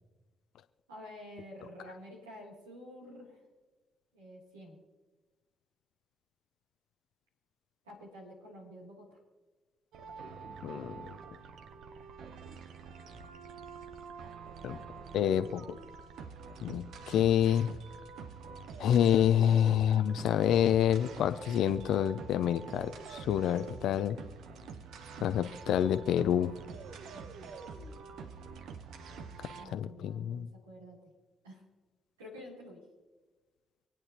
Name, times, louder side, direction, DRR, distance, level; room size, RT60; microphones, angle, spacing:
voice 1, 0.9-3.4 4.1-4.8 7.8-9.2 27.1-27.5 29.6-31.1 31.4-31.6 32.2-32.8, equal, 90° right, -4 dB, 3.1 m, -49 dB
sound 1, 9.9-29.7, right 5 dB, 65° right, 0.9 m, -46 dB
voice 2, 10.6-11.0 14.6-14.8 15.1-15.8 16.6-17.7 18.8-24.2 25.2-26.5 29.4-30.5, left 10 dB, 70° left, 10 dB, 0.6 m, -28 dB
26.5 x 9.0 x 2.9 m, 1.3 s
hypercardioid pair, 45°, 0 cm